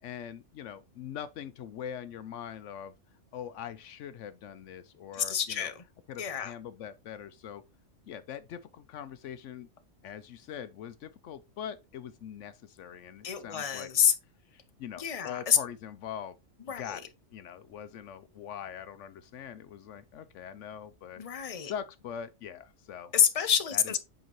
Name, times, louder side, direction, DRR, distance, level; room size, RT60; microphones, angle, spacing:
voice 1, 0.0-2.9 3.3-5.7 6.1-7.6 8.1-9.7 10.0-13.9 14.8-16.4 16.8-21.2 21.6-23.1 23.7-23.8, left 9 dB, 75° left, 0.9 m, -42 dB
voice 2, 5.1-5.8 6.2-6.5 13.2-14.1 15.0-15.6 16.7-17.0 21.2-21.7 23.1-24.0, left 8 dB, 30° left, 0.8 m, -27 dB
7.7 x 5.2 x 3.0 m
omnidirectional pair, 1.3 m